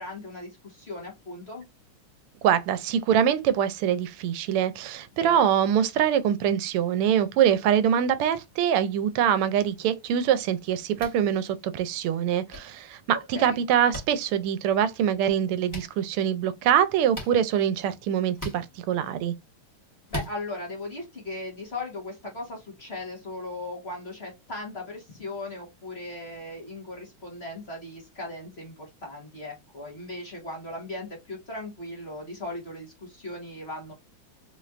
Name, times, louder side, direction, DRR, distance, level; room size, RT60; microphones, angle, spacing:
voice 1, 0.0-1.7 5.2-5.5 13.1-13.6 20.1-33.9, left 2 dB, 30° left, 1.7 m, -38 dB
voice 2, 2.4-19.3, right 9 dB, 85° right, 1.5 m, -24 dB
sound 1, 10.9-11.2 12.5-12.6 13.9-14.0 15.7-15.9 17.1-17.3 18.3-18.6 20.1-20.3, equal, 10° left, 1.6 m, -35 dB
4.4 x 3.2 x 2.4 m
omnidirectional pair, 2.4 m